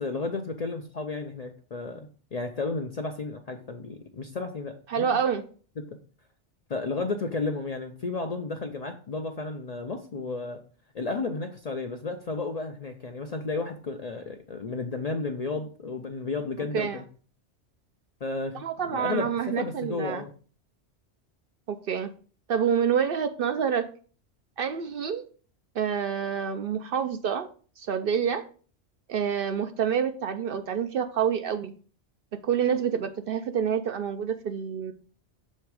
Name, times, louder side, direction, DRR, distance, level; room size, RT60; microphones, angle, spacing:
voice 1, 0.0-5.2 5.9-6.0 6.7-10.6 10.9-17.1 18.2-20.3, left 3 dB, 45° left, 5 dB, 0.5 m, -33 dB
voice 2, 4.9-5.4 16.7-17.0 18.6-20.2 21.7-22.1 22.5-23.9 24.6-25.2 25.7-27.5 27.8-28.4 29.1-31.7 32.4-34.9, right 7 dB, 60° right, 8 dB, 0.7 m, -27 dB
6.6 x 3.5 x 4.7 m, 0.41 s
omnidirectional pair, 1.2 m